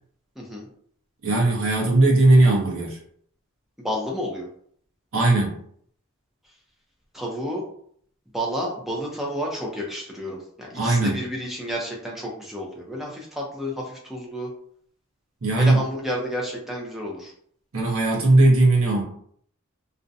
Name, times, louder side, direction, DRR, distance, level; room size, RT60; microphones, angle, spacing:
voice 1, 0.4-0.7 3.8-4.5 7.1-7.6 8.3-14.5 15.6-17.3, equal, ahead, -2 dB, 0.5 m, -30 dB
voice 2, 1.2-3.0 5.1-5.6 10.7-11.2 15.4-15.8 17.7-19.0, right 2 dB, 70° right, -3 dB, 0.7 m, -18 dB
2.5 x 2.1 x 2.6 m, 0.62 s
head